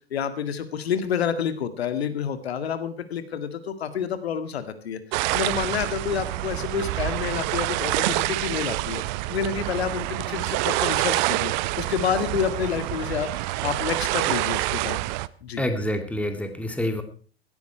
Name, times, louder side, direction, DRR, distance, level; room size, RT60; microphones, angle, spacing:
voice 1, 0.1-5.0 5.3-9.0 9.3-15.0 15.4-15.6, left 7 dB, 75° left, 11 dB, 2.0 m, -29 dB
sound 1, 5.1-15.3, right 19 dB, 45° right, 0.8 m, -27 dB
voice 2, 15.6-17.0, left 1 dB, 5° left, 8 dB, 2.2 m, -27 dB
17.0 x 13.0 x 4.6 m, 0.39 s
hypercardioid pair, 105°, 32 cm